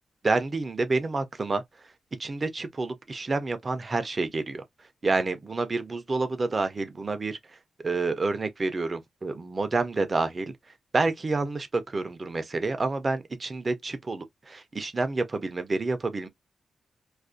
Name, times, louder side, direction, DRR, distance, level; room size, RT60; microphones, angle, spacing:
voice 1, 0.2-1.9 2.2-4.6 5.0-10.5 10.9-16.3, right 3 dB, 25° right, 0.4 m, -29 dB
2.4 x 2.1 x 2.4 m
wide cardioid pair, 165°, 0 cm